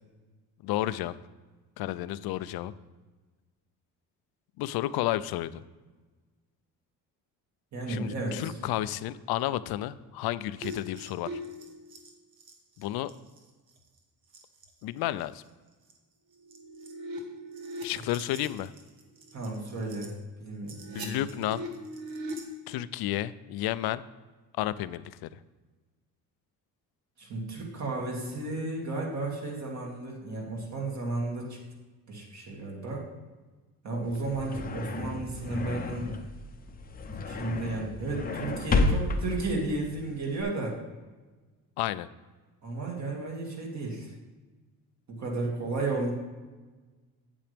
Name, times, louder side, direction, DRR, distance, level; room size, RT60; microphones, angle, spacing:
voice 1, 0.6-1.1 1.8-2.7 4.6-5.6 7.9-11.4 12.8-13.1 14.8-15.4 17.8-18.7 20.9-21.7 22.7-24.0 24.6-25.3 41.8-42.1, left 14 dB, 85° left, 16 dB, 0.5 m, -31 dB
voice 2, 7.7-8.5 19.3-21.2 27.2-31.6 32.1-33.0 33.8-36.1 37.3-40.8 42.6-44.1 45.1-46.1, right 2 dB, 50° right, -2 dB, 2.4 m, -33 dB
sound 1, 10.6-13.5 13.8-14.0 14.3-14.7 15.2-15.3 15.9-16.0 16.3-20.1 20.5-22.4, equal, 70° right, 1.5 m, -41 dB
sound 2, 34.0-40.4, left 3 dB, 25° left, 0.6 m, -31 dB
8.6 x 8.4 x 3.5 m, 1.3 s
cardioid pair, 145°, 36 cm